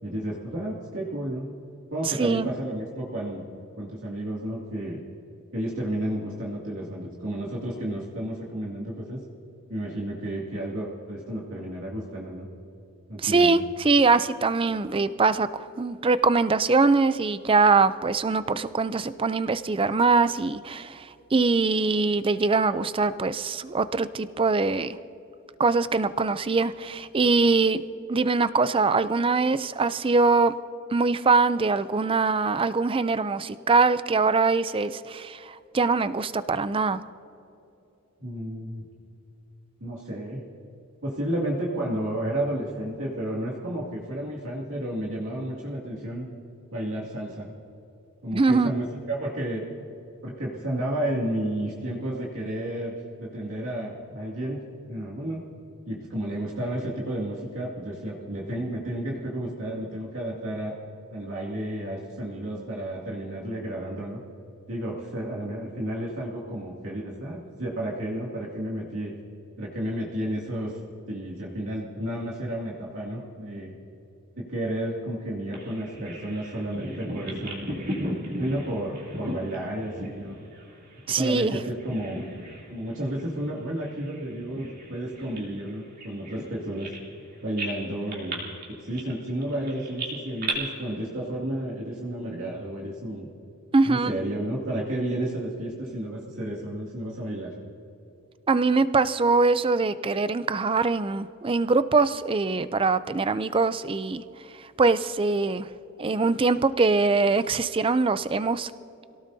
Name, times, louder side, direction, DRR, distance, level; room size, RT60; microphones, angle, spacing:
voice 1, 0.0-1.5 1.9-3.4 3.8-5.0 5.5-9.2 9.7-12.5 13.1-13.6 38.2-38.8 39.8-40.4 41.0-46.3 46.7-47.5 48.2-49.6 50.2-54.6 54.9-55.4 55.9-60.8 61.1-64.2 64.7-69.1 69.6-70.7 71.1-73.7 74.4-77.7 78.4-80.4 81.1-82.2 82.7-86.9 87.4-88.4 88.7-93.3 93.8-97.5, right 1 dB, 65° right, -4 dB, 2.4 m, -32 dB
voice 2, 2.2-2.5 13.2-21.1 21.3-25.0 25.6-27.8 28.1-30.5 30.9-37.0 48.3-48.7 81.1-81.6 93.7-94.1 98.5-104.2 104.8-105.7 106.0-108.7, right 4 dB, 25° right, 13 dB, 0.4 m, -23 dB
Bird vocalization bird call bird song, 75.5-81.5 81.8-82.7 83.0-83.2 83.8-87.2 87.6-90.5, right 1 dB, 45° right, 3.2 m, -36 dB
26.5 x 17.5 x 2.8 m, 2.9 s
head